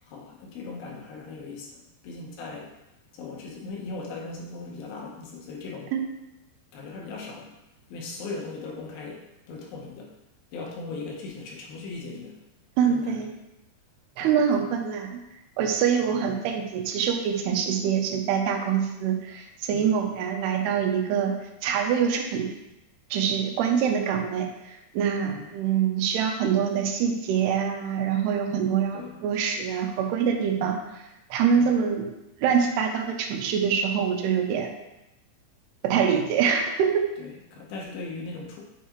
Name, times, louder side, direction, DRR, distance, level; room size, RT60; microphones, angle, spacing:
voice 1, 0.0-2.7 3.1-6.0 6.7-7.5 7.9-10.1 10.5-12.4 12.9-13.2 14.2-14.7 16.1-16.2 19.7-20.0 25.2-25.5 28.5-29.2 30.5-30.7 31.5-31.7 37.2-38.6, left 3 dB, 75° left, -1 dB, 2.5 m, -39 dB
voice 2, 12.8-13.3 14.2-15.2 15.6-21.3 21.6-22.5 23.1-30.8 31.3-32.1 32.4-34.7 35.8-37.1, right 7 dB, 85° right, 4 dB, 2.7 m, -25 dB
8.0 x 4.6 x 2.9 m, 0.92 s
omnidirectional pair, 4.6 m